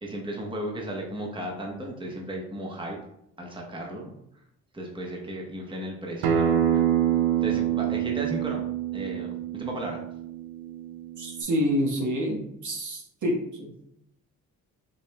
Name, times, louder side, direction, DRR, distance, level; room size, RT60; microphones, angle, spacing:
voice 1, 0.0-3.0 3.4-4.1 4.7-6.8 7.4-8.6 8.9-10.0, right 1 dB, 10° right, 0 dB, 1.0 m, -35 dB
Acoustic guitar, 6.2-11.4, right 10 dB, 65° right, 0.7 m, -26 dB
voice 2, 11.2-13.7, equal, 45° right, 0 dB, 1.2 m, -28 dB
5.3 x 2.8 x 2.2 m, 0.78 s
hypercardioid pair, 50°, 41 cm